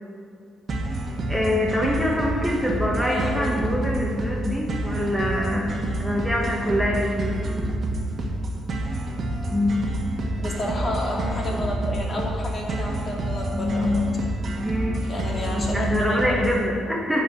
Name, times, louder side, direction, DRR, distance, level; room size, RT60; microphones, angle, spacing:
sound 1, 0.7-16.7, right 1 dB, 50° right, 1.5 m, -28 dB
voice 1, 1.3-7.7 9.5-9.9 12.2-12.3 13.5-15.1 15.5-17.2, left 1 dB, 5° right, -3 dB, 1.4 m, -25 dB
voice 2, 3.1-3.4 10.4-13.9 15.1-17.2, left 1 dB, 40° left, -2 dB, 2.4 m, -31 dB
10.5 x 4.9 x 7.8 m, 2.3 s
cardioid pair, 90°, 0 cm